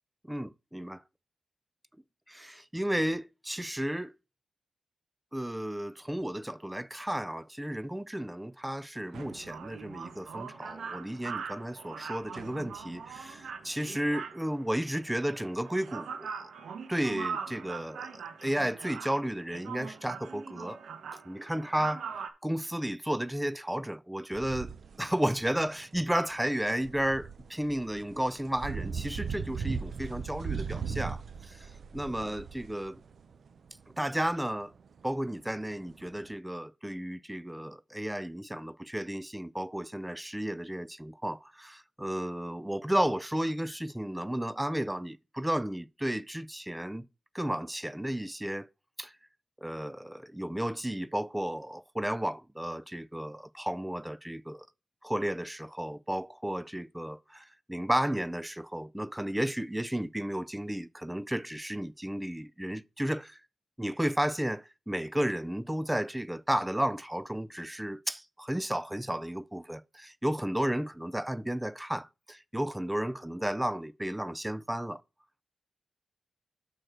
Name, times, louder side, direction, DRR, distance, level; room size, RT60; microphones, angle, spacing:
voice 1, 0.3-1.0 2.3-4.1 5.3-16.5 16.9-20.8 21.1-22.1 22.4-24.7 25.0-33.0 34.0-34.7 35.0-47.1 47.3-48.7 49.0-49.1 49.6-54.7 55.0-63.4 63.8-75.0, right 1 dB, 5° right, 0.3 m, -33 dB
sound 1, 9.0-22.3, right 6 dB, 90° right, 1.0 m, -42 dB
sound 2, 24.3-36.3, right 6 dB, 60° right, 0.6 m, -39 dB
6.7 x 6.3 x 4.4 m
wide cardioid pair, 115°, 0 cm